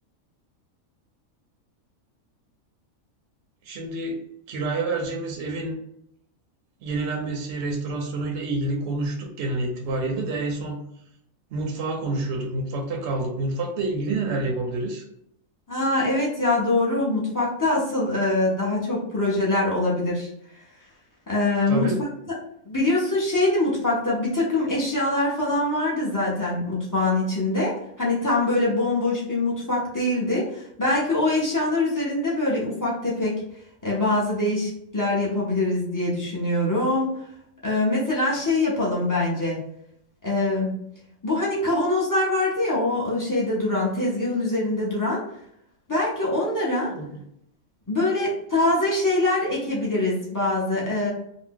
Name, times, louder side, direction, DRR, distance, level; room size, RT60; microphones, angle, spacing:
voice 1, 3.7-4.2 4.5-5.8 6.8-10.8 11.5-15.0 21.7-22.0 46.9-47.2, right 2 dB, 65° right, 1 dB, 0.8 m, -28 dB
voice 2, 15.7-20.3 21.3-21.9 22.6-33.4 33.8-37.2 37.6-39.6 40.2-40.8 41.2-45.2 45.9-46.9 47.9-51.1, left 2 dB, 25° left, -6 dB, 0.4 m, -24 dB
2.6 x 2.1 x 3.5 m, 0.74 s
omnidirectional pair, 1.5 m